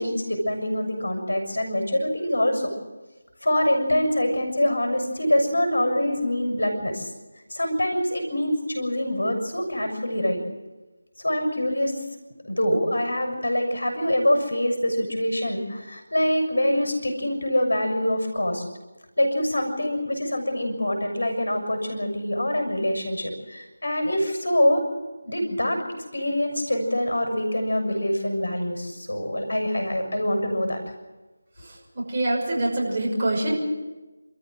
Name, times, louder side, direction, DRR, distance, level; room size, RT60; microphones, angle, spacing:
voice 1, 0.0-2.7 3.4-7.1 7.5-10.4 11.2-12.0 12.4-18.6 19.2-24.8 25.2-25.8 26.1-30.8, left 1 dB, 75° left, 5 dB, 6.6 m, -25 dB
voice 2, 31.9-33.5, right 1 dB, 30° right, -3 dB, 6.2 m, -24 dB
29.0 x 14.0 x 7.7 m, 1.1 s
figure-of-eight pair, 165°, 0 cm